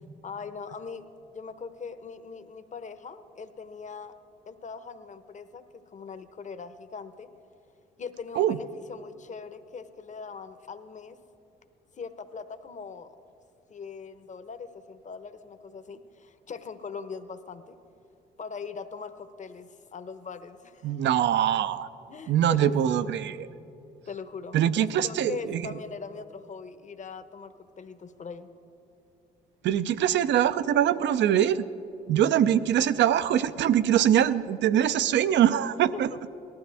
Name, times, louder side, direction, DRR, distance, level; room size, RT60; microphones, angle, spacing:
voice 1, 0.2-1.0 1.3-4.1 4.5-7.3 8.0-11.2 12.0-13.1 13.7-17.7 18.4-21.0 22.1-23.1 24.1-28.5, left 5 dB, 35° left, 10 dB, 0.9 m, -41 dB
voice 2, 20.8-21.9 22.3-23.5 24.5-25.8 29.6-31.6 32.1-36.1, right 10 dB, 60° right, 14 dB, 0.6 m, -23 dB
19.0 x 12.5 x 3.5 m, 2.8 s
supercardioid pair, 60°, 21 cm